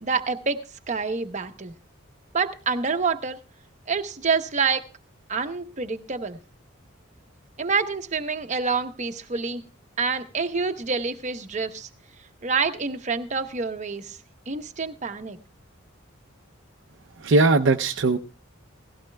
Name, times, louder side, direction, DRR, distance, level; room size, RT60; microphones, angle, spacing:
voice 1, 0.0-0.6 0.9-1.7 2.3-3.4 3.9-4.8 5.3-6.4 7.6-9.6 10.0-11.9 12.4-14.2 14.5-15.4, right 4 dB, 35° right, 7 dB, 0.9 m, -27 dB
voice 2, 17.2-18.2, right 3 dB, 65° right, 5 dB, 0.6 m, -19 dB
17.5 x 15.5 x 2.2 m, 0.34 s
head